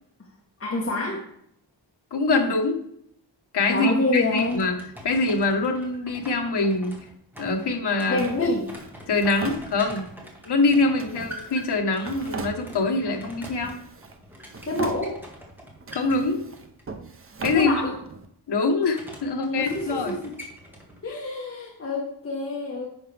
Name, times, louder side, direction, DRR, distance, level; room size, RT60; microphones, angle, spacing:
voice 1, 0.6-1.2 3.7-4.6 8.1-8.7 14.7-15.2 17.5-17.9 19.4-20.3 21.0-22.9, left 2 dB, 35° left, -2 dB, 1.3 m, -27 dB
voice 2, 2.1-2.8 3.5-4.8 5.0-7.0 7.4-8.2 9.1-10.1 10.4-13.8 15.9-16.5 17.4-17.7 18.5-20.2, left 3 dB, 70° left, 3 dB, 1.3 m, -24 dB
sound 1, 3.8-16.8 18.9-21.0, equal, 5° right, 1.6 m, -44 dB
Drawer open or close, 8.2-10.3 11.0-13.1 13.4-14.2 14.5-15.4 15.8-18.3, right 3 dB, 30° right, 0.7 m, -39 dB
10.5 x 6.0 x 3.4 m, 0.70 s
wide cardioid pair, 170°, 42 cm